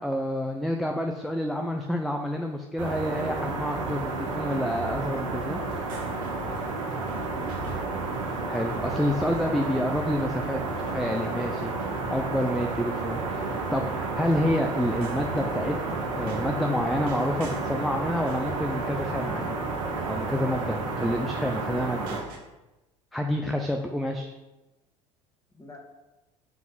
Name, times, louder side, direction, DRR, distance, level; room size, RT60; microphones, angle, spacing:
voice 1, 0.0-5.6 8.5-13.4 13.7-19.6 20.1-22.2 23.1-24.3, equal, ahead, 3 dB, 0.7 m, -28 dB
sound 1, 2.8-22.2, right 3 dB, 85° right, 1.3 m, -31 dB
sound 2, 4.0-22.4, right 4 dB, 65° right, 1.5 m, -45 dB
voice 2, 7.0-8.0 23.6-24.0 25.5-25.8, left 1 dB, 20° left, 1 dB, 2.0 m, -46 dB
7.4 x 3.9 x 5.6 m, 1.0 s
hypercardioid pair, 70°, 16 cm